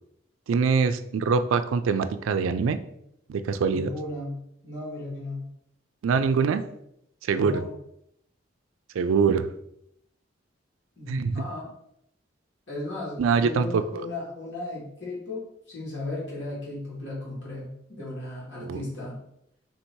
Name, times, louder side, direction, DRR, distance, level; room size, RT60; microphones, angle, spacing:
voice 1, 0.5-2.8 3.3-3.9 6.0-6.6 7.2-7.6 8.9-9.5 11.1-11.4 13.2-14.1 18.6-18.8, right 5 dB, 85° right, 11 dB, 0.3 m, -24 dB
voice 2, 3.6-4.4 4.6-5.5 7.3-7.7 11.0-11.7 12.7-19.2, left 2 dB, 65° left, -7 dB, 1.7 m, -36 dB
3.7 x 2.7 x 4.4 m, 0.77 s
head